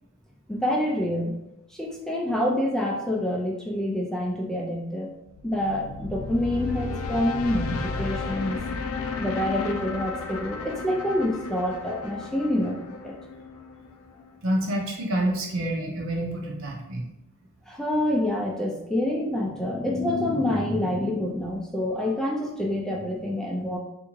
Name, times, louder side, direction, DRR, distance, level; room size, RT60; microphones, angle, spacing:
voice 1, 0.5-1.4 1.7-5.1 5.4-8.6 9.2-12.8 13.0-13.1 17.7-23.8, left 1 dB, ahead, -2 dB, 0.3 m, -27 dB
sound 1, 5.3-14.4, left 4 dB, 65° left, 0.4 m, -33 dB
voice 2, 14.4-17.0, right 1 dB, 60° right, 0 dB, 0.8 m, -27 dB
3.5 x 2.6 x 3.0 m, 0.85 s
head